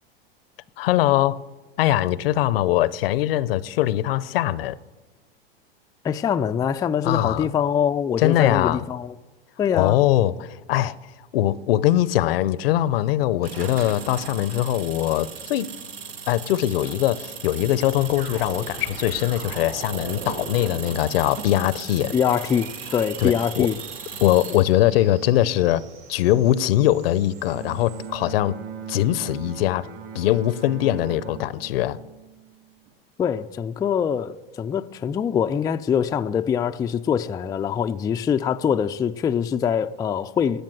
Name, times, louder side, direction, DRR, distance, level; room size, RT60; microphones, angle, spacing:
voice 1, 0.8-1.4 1.8-4.8 7.0-7.5 8.2-8.8 9.7-10.9 11.3-15.7 16.3-22.1 23.2-23.7 24.2-25.8 26.1-28.6 28.9-29.9 30.1-32.0, left 13 dB, 70° left, 0.7 m, -21 dB
voice 2, 6.0-9.1 9.6-10.0 22.1-23.8 33.2-40.6, left 8 dB, 15° left, 0.3 m, -24 dB
sound 1, 13.4-24.7, right 6 dB, 85° right, 1.6 m, -37 dB
sound 2, 18.0-28.1, right 5 dB, 65° right, 3.9 m, -42 dB
Bowed string instrument, 27.4-32.9, right 8 dB, 50° right, 3.1 m, -39 dB
13.5 x 8.6 x 7.7 m
hypercardioid pair, 110°, 30 cm